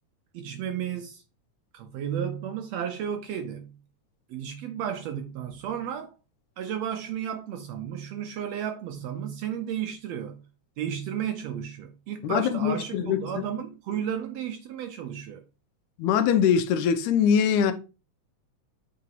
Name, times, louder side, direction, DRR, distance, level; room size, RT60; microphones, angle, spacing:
voice 1, 0.3-1.2 1.7-3.7 4.3-6.2 6.6-10.4 10.8-15.4, right 9 dB, 80° right, 1.6 m, -33 dB
voice 2, 12.2-13.5 16.0-17.7, left 8 dB, 85° left, 2.1 m, -23 dB
8.2 x 3.8 x 2.9 m
omnidirectional pair, 3.5 m